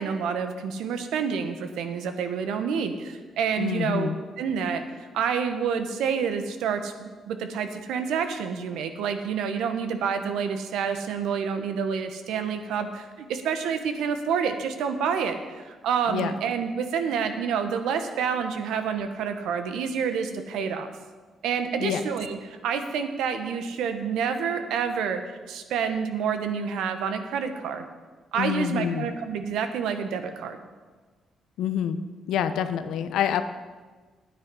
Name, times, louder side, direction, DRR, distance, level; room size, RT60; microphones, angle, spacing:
voice 1, 0.0-4.1 4.4-20.9 21.4-25.2 25.5-27.8 28.3-30.6, right 6 dB, 85° right, 8 dB, 1.0 m, -28 dB
voice 2, 3.6-4.2 16.1-16.3 21.8-22.0 28.4-29.1 31.6-32.0 32.3-33.4, left 9 dB, 80° left, 11 dB, 0.7 m, -27 dB
9.7 x 9.4 x 5.4 m, 1.4 s
cardioid pair, 90°, 0 cm